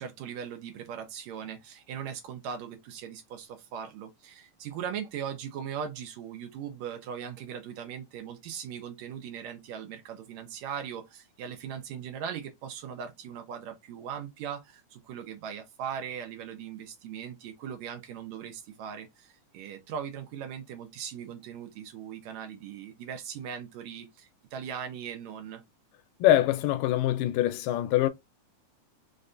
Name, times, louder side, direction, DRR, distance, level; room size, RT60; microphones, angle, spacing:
voice 1, 0.0-25.6, right 8 dB, 75° right, 1.7 m, -39 dB
voice 2, 26.2-28.1, left 13 dB, 85° left, 2.2 m, -24 dB
5.2 x 2.2 x 2.4 m
omnidirectional pair, 3.8 m